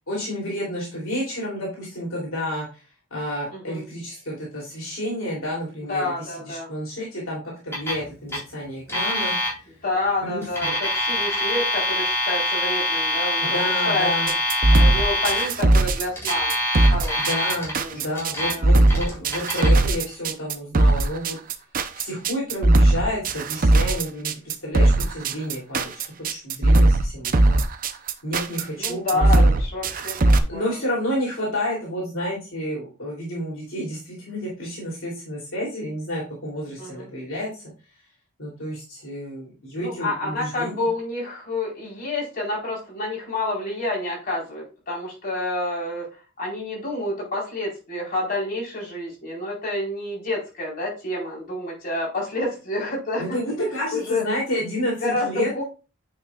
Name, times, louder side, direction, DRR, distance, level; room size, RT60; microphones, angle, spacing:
voice 1, 0.1-2.8 3.1-9.3 10.2-10.7 13.4-14.3 17.2-21.4 22.0-27.6 28.2-29.6 30.5-37.5 38.4-40.9 53.2-55.5, equal, 70° left, -5 dB, 3.1 m, -30 dB
voice 2, 3.5-3.8 5.9-6.7 9.8-10.7 11.0-14.3 14.7-16.5 16.9-17.4 17.8-18.2 18.5-18.7 28.8-30.8 36.8-37.1 39.8-46.1 46.4-53.4 53.9-54.2 55.0-55.6, left 2 dB, 45° left, -4 dB, 4.2 m, -29 dB
Alarm, 7.7-8.0 8.3-8.4 8.9-9.5 10.4-15.4 16.2-17.7 18.1-18.5 18.9-19.7, left 1 dB, 10° left, 3.8 m, -24 dB
sound 1, 14.3-30.4, right 2 dB, 40° right, 0.6 m, -18 dB
9.2 x 5.8 x 2.4 m, 0.32 s
head